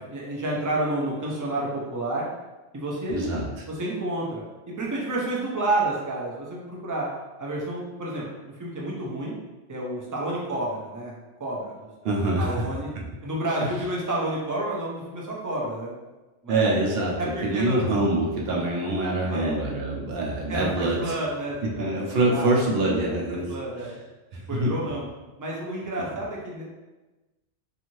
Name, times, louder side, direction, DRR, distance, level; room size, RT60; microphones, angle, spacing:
voice 1, 0.0-2.3 2.7-7.1 7.4-9.3 9.7-11.1 11.4-11.9 12.4-12.9 13.2-15.9 16.4-16.7 17.2-17.8 19.3-19.6 20.5-22.5 23.3-23.9 24.5-25.1 25.4-26.7, right 1 dB, 30° right, -4 dB, 0.3 m, -30 dB
voice 2, 3.1-3.5 12.0-12.7 13.0-13.1 13.6-13.7 16.5-21.2 21.6-23.9 24.3-24.8, right 2 dB, 65° right, -2 dB, 0.8 m, -25 dB
2.6 x 2.5 x 3.0 m, 1.1 s
omnidirectional pair, 1.1 m